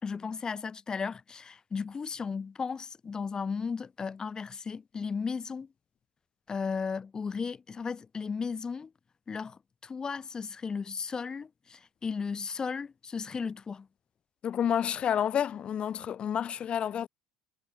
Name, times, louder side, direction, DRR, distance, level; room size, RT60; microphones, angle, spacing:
voice 1, 0.0-5.7 6.5-8.9 9.3-13.9, left 5 dB, 30° left, 4.7 m, -35 dB
voice 2, 14.4-17.1, left 9 dB, 45° left, 1.4 m, -29 dB
supercardioid pair, 85°, 3 cm